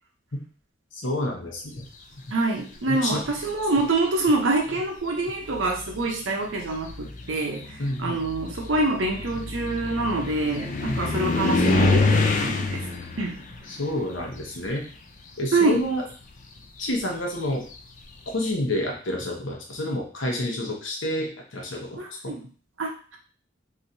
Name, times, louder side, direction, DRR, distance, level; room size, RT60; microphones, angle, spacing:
voice 1, 0.9-1.9 2.9-3.2 7.8-8.2 10.9-11.1 13.7-14.8 15.4-16.0 16.8-17.6 18.3-22.3, left 1 dB, 80° left, 0 dB, 0.9 m, -29 dB
voice 2, 2.3-7.6 8.0-12.9 13.2-13.4 15.5-15.8 22.0-22.4 22.8-23.2, right 2 dB, 80° right, 1 dB, 0.7 m, -26 dB
sound 1, 3.1-3.6 4.6-4.7 5.3-15.2 15.5-18.1, left 3 dB, 40° left, 0.4 m, -27 dB
3.1 x 2.7 x 2.7 m, 0.40 s
head